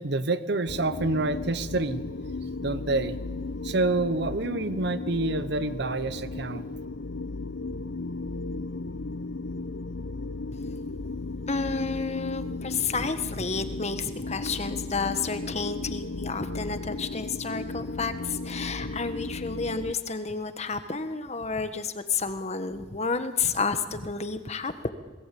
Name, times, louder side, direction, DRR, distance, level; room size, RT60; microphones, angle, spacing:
voice 1, 0.0-2.0 2.6-3.2 3.6-6.6, right 2 dB, 60° right, 13 dB, 0.9 m, -27 dB
sound 1, 0.7-19.9, left 3 dB, 80° left, 0.8 m, -35 dB
voice 2, 11.5-24.9, left 4 dB, 35° left, 10 dB, 1.4 m, -30 dB
27.5 x 20.0 x 8.5 m, 1.3 s
head